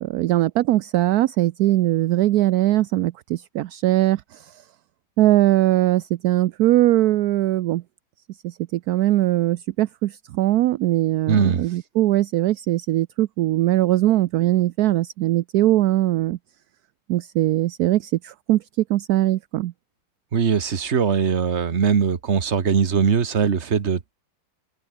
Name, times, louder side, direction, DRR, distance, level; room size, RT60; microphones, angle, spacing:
voice 1, 0.0-4.2 5.2-7.8 8.7-10.1 10.4-16.4 17.1-18.6 18.9-19.7, right 15 dB, 70° right, 1.0 m, -20 dB
voice 2, 11.3-11.7 20.3-24.1, right 6 dB, 40° right, 1.5 m, -21 dB
omnidirectional pair, 1.9 m